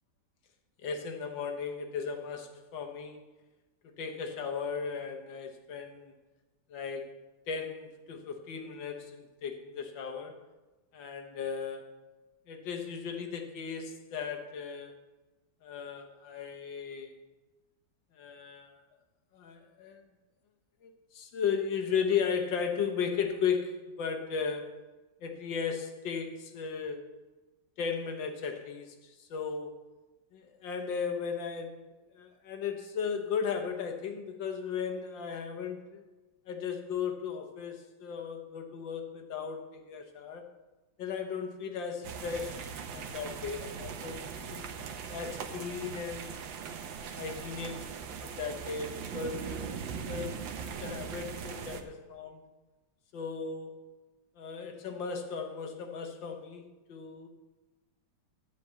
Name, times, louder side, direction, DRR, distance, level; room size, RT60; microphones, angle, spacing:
voice 1, 0.8-3.2 4.0-6.1 6.7-10.4 10.9-11.9 12.5-15.0 15.6-17.1 18.1-18.8 19.3-20.0 20.8-24.8 25.2-27.1 27.8-29.7 30.3-31.8 32.1-36.0 36.5-40.4 41.0-44.6 45.1-46.4 47.2-47.9 48.2-49.8 50.0-50.5 50.8-52.4 53.1-53.7 54.4-57.3, left 6 dB, 70° left, 4 dB, 1.8 m, -36 dB
sound 1, 42.0-51.8, right 6 dB, 70° right, 1.5 m, -40 dB
12.0 x 5.1 x 8.1 m, 1.2 s
omnidirectional pair, 2.2 m